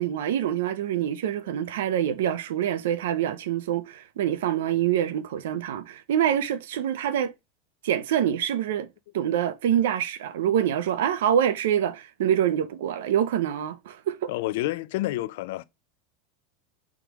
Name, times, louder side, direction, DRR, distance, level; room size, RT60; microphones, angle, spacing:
voice 1, 0.0-7.3 7.8-8.9 9.1-14.3, right 10 dB, 85° right, 0.5 m, -25 dB
voice 2, 14.3-15.6, left 16 dB, 70° left, 0.4 m, -29 dB
4.8 x 3.6 x 3.0 m
supercardioid pair, 150°, 0 cm